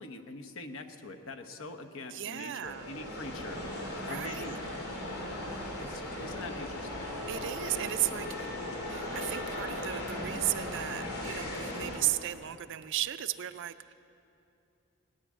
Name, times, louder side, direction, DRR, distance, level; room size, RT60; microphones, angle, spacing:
voice 1, 0.0-3.6 3.9-4.5 5.4-7.1, left 2 dB, 60° left, 6 dB, 1.0 m, -44 dB
voice 2, 2.1-2.9 4.0-4.6 7.1-8.5 8.9-13.9, right 13 dB, 55° right, 13 dB, 0.4 m, -35 dB
sound 1, 2.6-12.0, left 1 dB, 85° left, 2.8 m, -37 dB
18.0 x 10.0 x 7.4 m, 2.7 s
head